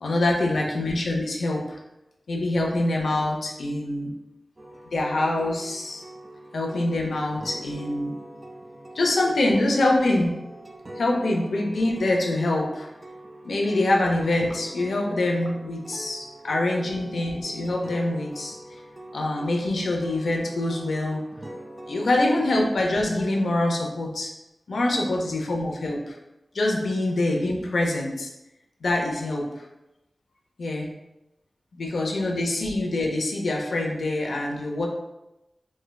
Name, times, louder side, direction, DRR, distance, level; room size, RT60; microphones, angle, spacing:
voice 1, 0.0-1.8 2.3-4.1 4.9-6.0 6.5-8.1 8.9-10.3 11.0-12.9 13.4-18.6 19.1-21.2 21.9-24.3 24.7-26.2 26.5-28.3 28.8-29.6 30.6-30.9 31.7-34.9, left 2 dB, 90° left, 0 dB, 0.5 m, -25 dB
sound 1, 4.6-23.5, right 1 dB, 30° right, 0.3 m, -43 dB
4.3 x 2.1 x 2.2 m, 0.96 s
wide cardioid pair, 85°, 0 cm